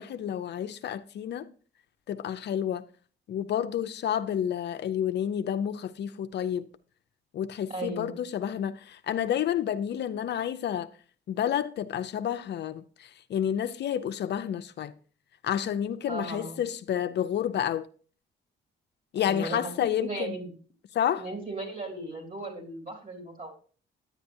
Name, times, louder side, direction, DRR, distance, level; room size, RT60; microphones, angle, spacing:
voice 1, 0.0-1.5 2.1-2.8 3.3-6.7 7.3-10.9 11.3-14.9 15.4-17.9 19.1-20.4 20.9-21.2, left 9 dB, 60° left, 0.5 m, -30 dB
voice 2, 7.7-8.2 16.1-16.6 19.2-19.7 20.0-20.5 21.2-23.5, right 2 dB, 45° right, 3.2 m, -36 dB
10.5 x 8.1 x 2.7 m
cardioid pair, 90°, 20 cm